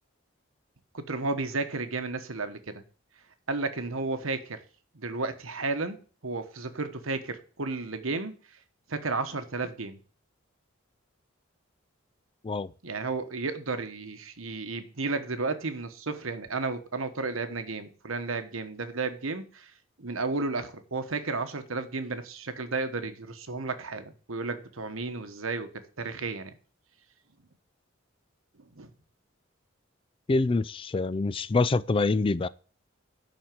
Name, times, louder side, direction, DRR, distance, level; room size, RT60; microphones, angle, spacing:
voice 1, 0.9-2.8 3.5-4.6 4.9-8.3 8.9-10.0 12.8-19.7 20.0-25.7 26.0-26.5 28.8-28.9, right 3 dB, 80° right, 1.2 m, -33 dB
voice 2, 30.3-32.5, left 3 dB, 25° left, 0.4 m, -25 dB
11.0 x 4.3 x 7.7 m
head